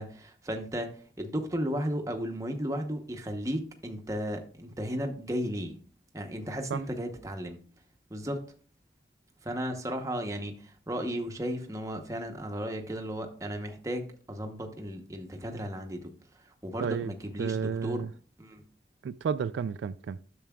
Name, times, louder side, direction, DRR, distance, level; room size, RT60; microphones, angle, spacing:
voice 1, 0.0-5.8 6.1-7.6 8.1-8.4 9.4-16.1 16.6-18.1 18.4-18.6, equal, 20° right, 0.9 m, -34 dB
voice 2, 16.8-17.1 17.4-18.1 19.0-20.2, right 6 dB, 85° right, 0.3 m, -31 dB
10.5 x 7.0 x 2.3 m
head